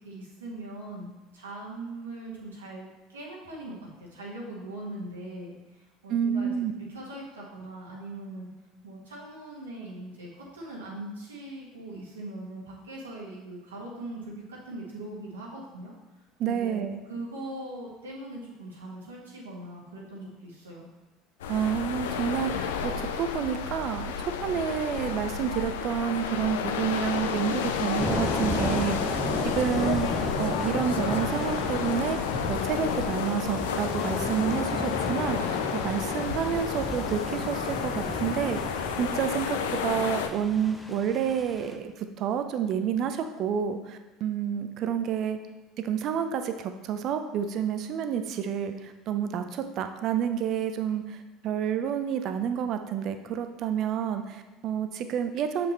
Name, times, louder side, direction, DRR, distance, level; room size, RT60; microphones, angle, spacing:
voice 1, 0.0-8.5 8.8-15.9 16.4-16.8 17.1-20.9, right 1 dB, 90° right, -4 dB, 1.8 m, -41 dB
voice 2, 6.1-6.7 16.4-17.0 21.5-29.2 29.5-32.2 32.5-45.4 45.8-55.7, right 8 dB, 55° right, 8 dB, 0.6 m, -29 dB
sound 1, 21.4-40.3, left 7 dB, 80° left, 0.5 m, -31 dB
Thunder / Rain, 28.0-41.7, left 1 dB, 10° left, 0.9 m, -34 dB
6.9 x 5.9 x 3.3 m, 1.1 s
hypercardioid pair, 70°, 0 cm